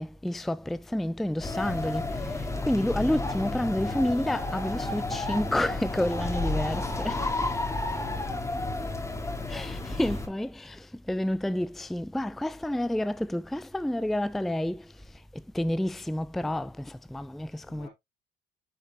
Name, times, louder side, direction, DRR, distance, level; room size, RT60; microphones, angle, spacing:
voice 1, 0.0-2.3 2.6-7.2 9.5-14.8 15.3-17.9, left 1 dB, ahead, 0.4 m, -29 dB
sound 1, 1.4-10.3, left 2 dB, 15° left, 2.0 m, -31 dB
voice 2, 6.5-8.1 17.6-17.9, left 5 dB, 70° left, 4.2 m, -50 dB
9.3 x 5.2 x 2.9 m
cardioid pair, 110°, 17 cm